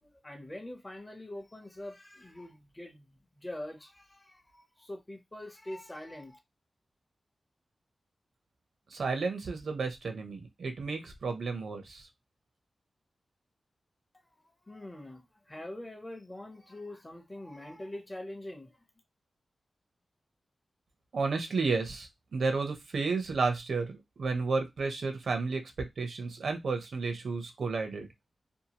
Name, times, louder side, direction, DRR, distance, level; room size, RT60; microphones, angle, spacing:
voice 1, 0.0-3.1 3.4-6.4 14.7-18.8, left 1 dB, 15° left, 0.6 m, -44 dB
voice 2, 8.9-12.1 21.1-28.1, right 4 dB, 75° right, 0.6 m, -32 dB
2.7 x 2.3 x 2.8 m
wide cardioid pair, 135°, 0 cm